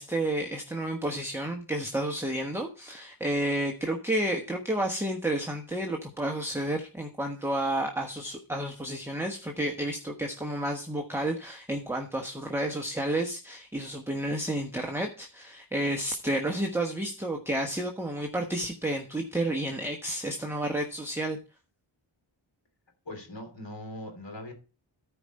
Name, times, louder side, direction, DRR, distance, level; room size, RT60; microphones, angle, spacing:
voice 1, 0.0-21.4, right 1 dB, 5° right, 2 dB, 1.1 m, -31 dB
voice 2, 23.0-24.5, left 1 dB, 60° left, 3 dB, 3.1 m, -40 dB
13.5 x 5.0 x 4.2 m, 0.35 s
wide cardioid pair, 80°, 49 cm